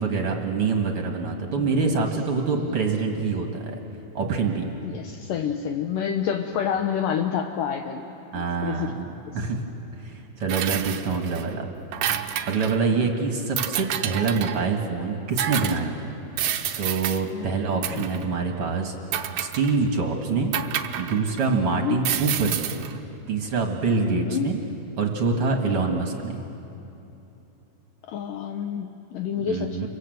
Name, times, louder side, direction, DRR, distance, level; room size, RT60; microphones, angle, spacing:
voice 1, 0.0-3.8 4.1-4.7 8.3-9.1 9.3-9.6 10.0-11.7 12.4-16.2 16.8-18.9 19.3-20.5 21.0-22.8 23.3-24.6 25.0-26.4 29.4-29.9, right 4 dB, 50° right, 3 dB, 2.0 m, -25 dB
voice 2, 1.5-2.0 2.5-2.8 4.8-8.1 8.3-9.1 13.0-13.1 17.3-18.2 21.5-22.0 24.0-24.5 26.1-26.4 28.1-29.9, left 8 dB, 70° left, 4 dB, 2.3 m, -29 dB
sound 1, 10.5-11.4 11.8-12.8 13.6-14.7 15.4-15.8 16.4-17.2 17.8-18.2 19.1-19.9 20.5-21.5 22.0-22.9, right 10 dB, 75° right, 1.7 m, -29 dB
29.0 x 24.5 x 7.8 m, 2.8 s
omnidirectional pair, 4.4 m